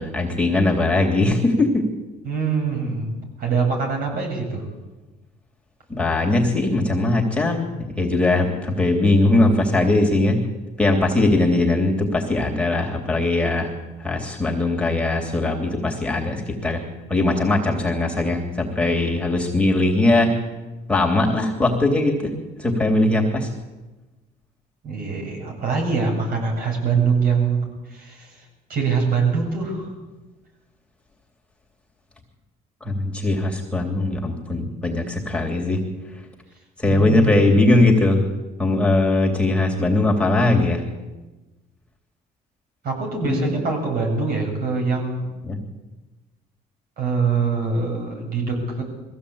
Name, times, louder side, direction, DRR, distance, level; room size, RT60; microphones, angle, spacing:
voice 1, 0.0-1.9 5.9-10.4 10.8-13.7 14.0-16.8 17.1-20.4 20.9-22.3 22.6-23.5 32.8-35.8 36.8-38.2 38.6-40.8 43.2-43.5 45.4-45.6, left 2 dB, 5° left, -1 dB, 3.0 m, -20 dB
voice 2, 2.2-4.6 24.8-28.4 28.7-29.9 36.9-37.6 42.8-45.3 47.0-48.8, right 5 dB, 60° right, 1 dB, 8.0 m, -24 dB
21.5 x 15.5 x 8.7 m, 1.2 s
cardioid pair, 110°, 17 cm